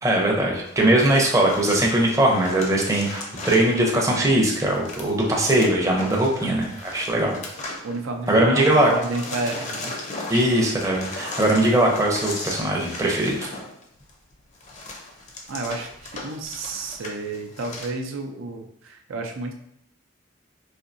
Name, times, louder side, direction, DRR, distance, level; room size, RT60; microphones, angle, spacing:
voice 1, 0.0-7.4 8.3-8.9 10.3-13.4, right 1 dB, 15° right, -1 dB, 0.6 m, -20 dB
sound 1, 0.6-8.4 8.6-17.9, left 2 dB, 35° left, 0.6 m, -37 dB
voice 2, 7.8-9.9 15.5-19.5, right 2 dB, 85° right, 2 dB, 0.5 m, -31 dB
4.2 x 2.7 x 2.6 m, 0.75 s
head